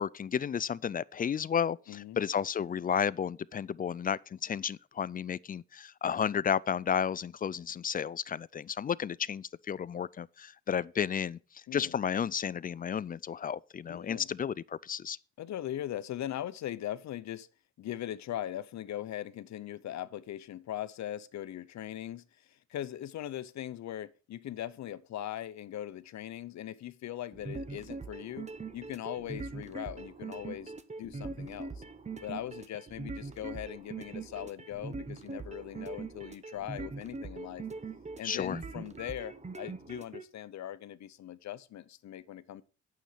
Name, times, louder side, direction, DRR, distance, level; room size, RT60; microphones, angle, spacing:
voice 1, 0.0-15.2 38.2-38.6, left 8 dB, 30° left, 0.4 m, -32 dB
voice 2, 1.9-2.2 11.7-11.9 13.9-14.3 15.4-17.5 17.8-31.8 32.2-37.7 38.2-42.6, left 12 dB, 65° left, 0.8 m, -40 dB
sound 1, 27.3-40.2, right 3 dB, 20° right, 1.1 m, -42 dB
9.1 x 7.1 x 5.6 m
cardioid pair, 90°, 30 cm